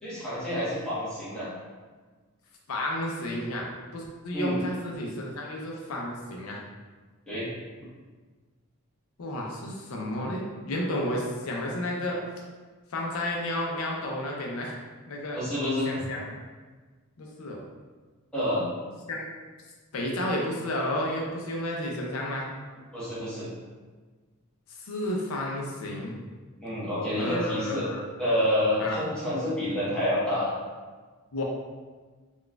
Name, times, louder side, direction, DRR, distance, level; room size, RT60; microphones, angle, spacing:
voice 1, 0.0-1.5 4.3-4.6 7.3-7.5 15.3-15.9 18.3-18.7 22.9-23.5 26.6-27.9 28.2-30.5, left 1 dB, 5° left, -11 dB, 0.9 m, -28 dB
voice 2, 2.7-6.6 9.2-12.2 12.9-14.8 15.1-15.4 15.8-16.4 17.2-17.6 19.1-19.3 19.9-22.5 24.7-26.1 27.2-28.0 28.8-29.0 31.3-31.4, left 1 dB, 75° left, -1 dB, 0.5 m, -32 dB
4.0 x 2.3 x 2.2 m, 1.4 s
head